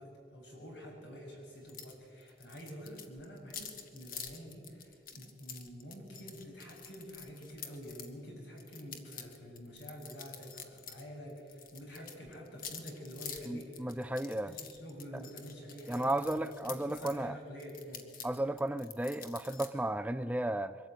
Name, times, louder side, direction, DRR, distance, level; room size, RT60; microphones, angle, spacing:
voice 1, 0.0-18.1, equal, 80° left, 7.0 m, -48 dB
sound 1, 1.7-2.0 2.2-8.1 8.6-11.0 11.3-17.2 17.6-19.7, left 7 dB, 50° left, 1.6 m, -48 dB
voice 2, 13.5-14.5 15.9-17.4 18.2-20.8, right 1 dB, 10° right, 0.4 m, -34 dB
23.0 x 13.5 x 9.1 m
head